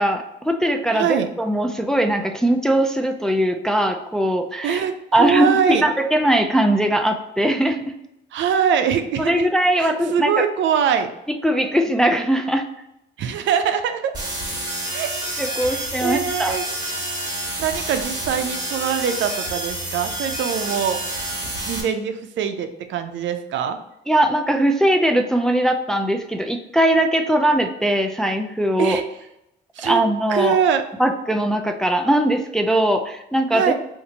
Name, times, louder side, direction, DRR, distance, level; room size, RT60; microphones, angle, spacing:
voice 1, 0.0-4.8 5.1-5.5 5.8-7.8 9.2-10.4 11.4-12.6 15.4-16.6 24.1-29.0 29.8-30.6 31.0-33.6, right 1 dB, 5° left, 4 dB, 0.3 m, -20 dB
voice 2, 0.9-1.3 4.6-5.8 8.3-9.3 9.8-11.1 13.2-14.1 14.9-15.1 15.6-16.7 17.6-21.0 21.6-23.8 28.8-29.0 29.8-30.0 30.3-30.9 33.5-33.7, right 7 dB, 70° right, 8 dB, 0.4 m, -23 dB
sound 1, 14.1-21.8, right 1 dB, 20° right, 1.2 m, -28 dB
2.7 x 2.5 x 3.9 m, 0.84 s
cardioid pair, 90°, 20 cm